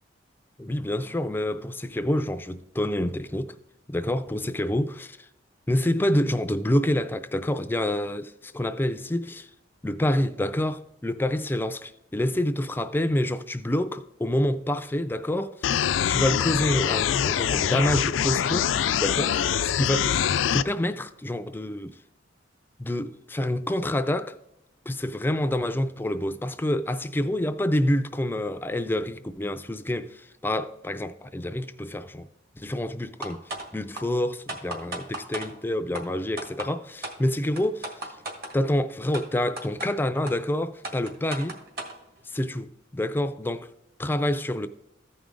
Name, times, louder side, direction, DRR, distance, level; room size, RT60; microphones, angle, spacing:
voice 1, 0.6-3.5 3.9-5.2 5.7-9.5 9.8-15.7 16.1-18.7 19.0-20.3 20.5-22.0 22.8-24.3 24.9-32.3 32.6-33.4 33.7-38.1 38.5-41.6 42.3-43.7 44.0-44.7, left 1 dB, 10° left, 0.3 m, -27 dB
sound 1, 15.6-20.6, left 9 dB, 90° left, 0.4 m, -24 dB
sound 2, 33.2-33.7 34.0-34.1 34.5-35.5 35.9-36.0 36.4-36.7 37.0-37.2 37.6-38.5 39.1-39.2 39.6-39.9 40.3-40.4 40.8-42.0, right 2 dB, 55° right, 1.8 m, -34 dB
14.5 x 5.0 x 3.7 m
head